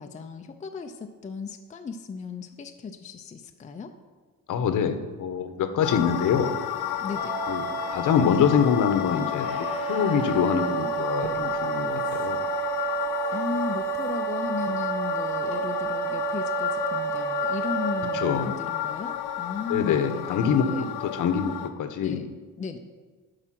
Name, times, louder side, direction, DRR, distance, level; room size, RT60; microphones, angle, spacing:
voice 1, 0.0-3.9 7.0-7.3 13.3-20.9 22.0-22.3 22.6-22.8, left 5 dB, 20° left, 5 dB, 0.5 m, -36 dB
voice 2, 4.5-6.5 7.5-7.6 7.9-12.4 18.1-18.5 19.7-22.2, left 7 dB, 60° left, 8 dB, 1.0 m, -25 dB
sound 1, 5.8-21.7, left 11 dB, 90° left, 0.9 m, -32 dB
sound 2, 7.1-18.3, right 10 dB, 80° right, 1.6 m, -31 dB
sound 3, 11.1-15.7 16.1-16.2, right 3 dB, 55° right, 1.9 m, -48 dB
11.0 x 4.9 x 5.9 m, 1.4 s
cardioid pair, 135°, 36 cm